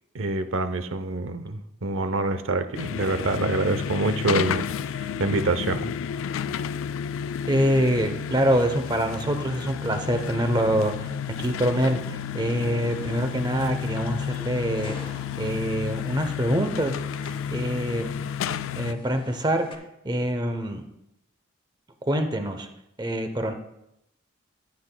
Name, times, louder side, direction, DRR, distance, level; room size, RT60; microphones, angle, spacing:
voice 1, 0.1-4.6 4.9-5.9, right 2 dB, 80° right, 10 dB, 0.7 m, -26 dB
sound 1, 2.7-18.9, left 8 dB, 75° left, 0.3 m, -31 dB
voice 2, 7.5-15.0 15.4-18.1 18.5-19.7 20.0-20.8 22.0-22.7 23.0-23.5, right 1 dB, 20° right, 7 dB, 0.7 m, -25 dB
sound 2, 12.8-19.7, left 1 dB, 25° left, 0.8 m, -48 dB
14.0 x 8.8 x 2.3 m, 0.84 s
head